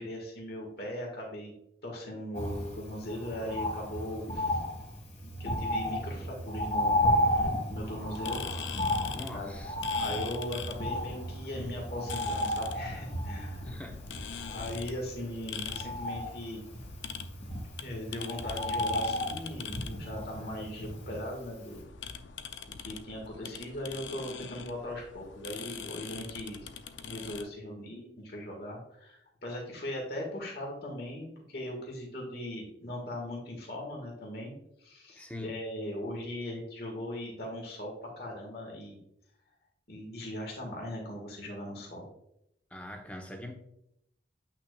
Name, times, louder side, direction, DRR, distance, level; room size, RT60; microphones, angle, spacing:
voice 1, 0.0-1.5 1.8-4.6 5.2-8.4 9.3-9.6 10.0-13.8 14.4-16.6 17.8-21.8 22.8-26.7 27.0-34.5 34.8-39.0 39.9-42.0, left 1 dB, 55° left, 0 dB, 1.7 m, -39 dB
Bird, 2.3-21.5 21.8-21.9, left 1 dB, 40° left, 1.8 m, -33 dB
sound 1, 8.2-27.4, left 7 dB, 80° left, 0.5 m, -43 dB
voice 2, 9.1-9.8 13.6-14.0 35.2-35.5 42.7-43.5, left 1 dB, 5° left, 3 dB, 0.8 m, -42 dB
8.1 x 5.8 x 2.3 m, 0.77 s
head